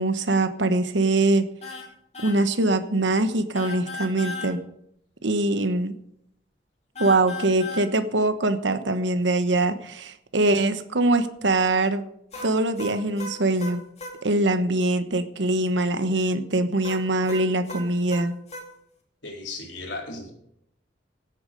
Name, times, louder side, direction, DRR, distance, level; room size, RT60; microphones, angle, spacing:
voice 1, 0.0-1.4 2.2-4.6 5.2-5.9 7.0-12.1 12.4-13.8 14.2-18.3, right 2 dB, 85° right, 10 dB, 1.2 m, -23 dB
sound 1, 1.6-1.9 2.1-2.4 3.5-4.5 7.0-7.9 12.3-14.2 16.8-18.7, left 3 dB, 35° left, 2.5 m, -36 dB
voice 2, 19.2-20.3, left 3 dB, 85° left, 1 dB, 4.0 m, -35 dB
16.5 x 8.7 x 5.4 m, 0.74 s
head